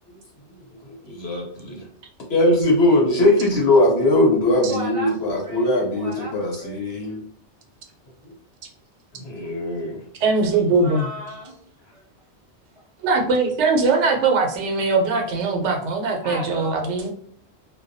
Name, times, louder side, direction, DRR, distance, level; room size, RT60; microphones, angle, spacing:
voice 1, 0.8-1.9 2.3-7.2 9.2-10.0, left 1 dB, 65° left, -1 dB, 1.1 m, -20 dB
voice 2, 4.7-6.7 10.7-11.6 11.9-12.0 16.2-17.1, right 1 dB, 45° right, -4 dB, 0.5 m, -35 dB
voice 3, 10.2-11.1 13.0-17.1, right 3 dB, 90° right, 3 dB, 0.9 m, -21 dB
2.2 x 2.2 x 2.6 m, 0.63 s
omnidirectional pair, 1.2 m